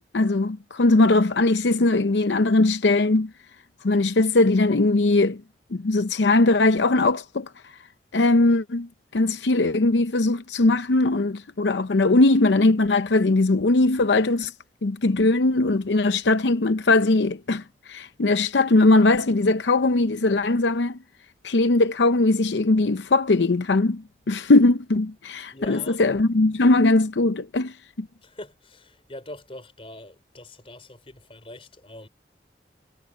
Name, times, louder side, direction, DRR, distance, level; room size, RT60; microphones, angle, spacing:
voice 1, 0.1-3.3 3.8-5.4 5.7-7.5 8.1-14.5 14.8-21.0 21.4-28.1, left 2 dB, 80° left, 0.7 m, -20 dB
voice 2, 25.5-26.0 28.2-32.1, left 1 dB, 30° left, 4.4 m, -42 dB
head